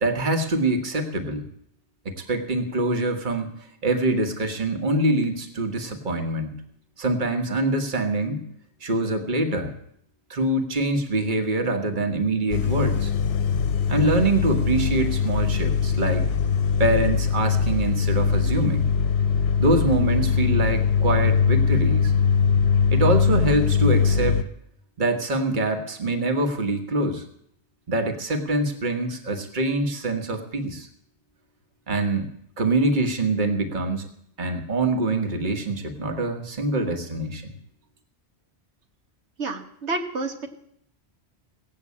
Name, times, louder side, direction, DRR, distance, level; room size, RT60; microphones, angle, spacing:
voice 1, 0.0-1.4 2.1-3.5 3.8-6.6 7.0-8.5 8.8-9.7 10.3-13.1 13.9-16.3 16.8-18.9 19.6-22.1 22.9-24.4 25.0-27.2 27.9-30.9 31.9-32.3 32.6-34.1 34.4-37.5, right 2 dB, 45° right, 6 dB, 1.6 m, -24 dB
sound 1, 12.5-24.4, left 6 dB, 70° left, 1.0 m, -21 dB
voice 2, 39.4-40.5, right 3 dB, 85° right, 4 dB, 1.6 m, -29 dB
17.5 x 7.8 x 8.4 m, 0.71 s
omnidirectional pair, 1.1 m